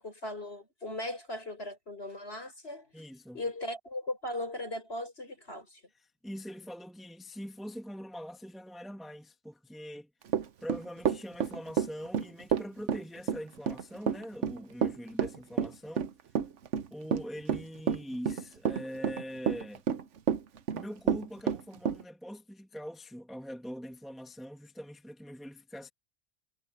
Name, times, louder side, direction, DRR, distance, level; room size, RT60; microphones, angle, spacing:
voice 1, 0.0-3.0 3.3-5.8, left 1 dB, 45° left, 6.5 m, -38 dB
voice 2, 2.9-3.4 6.2-10.1 10.6-16.1 16.9-19.8 20.7-25.9, equal, ahead, 1.7 m, -43 dB
Run / Walk footsteps, 10.3-22.0, right 7 dB, 60° right, 1.2 m, -29 dB
omnidirectional pair, 1.4 m